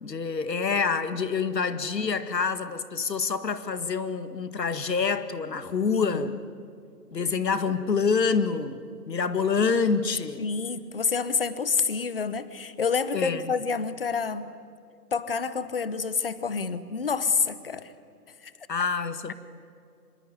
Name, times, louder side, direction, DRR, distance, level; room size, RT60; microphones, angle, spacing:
voice 1, 0.0-6.4 7.1-10.5 13.1-13.5 18.7-19.3, left 5 dB, 80° left, 11 dB, 2.1 m, -27 dB
voice 2, 5.9-6.4 10.4-14.5 15.1-17.9 18.4-18.5, left 5 dB, 35° left, 15 dB, 1.0 m, -28 dB
26.0 x 23.0 x 9.6 m, 2.4 s
hypercardioid pair, 175°, 49 cm